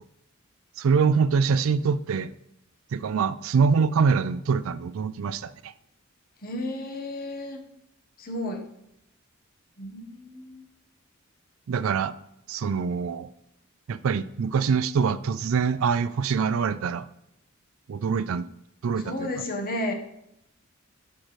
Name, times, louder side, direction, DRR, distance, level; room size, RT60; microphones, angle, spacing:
voice 1, 0.8-2.3 2.9-5.7 11.7-12.1 12.5-13.3 13.9-17.1 17.9-18.4 18.8-19.3, right 5 dB, 70° right, 15 dB, 0.4 m, -24 dB
voice 2, 6.4-7.6 8.2-8.6 9.8-10.6 19.0-19.9, left 1 dB, 45° left, 3 dB, 1.1 m, -32 dB
11.5 x 5.0 x 3.2 m, 0.81 s
head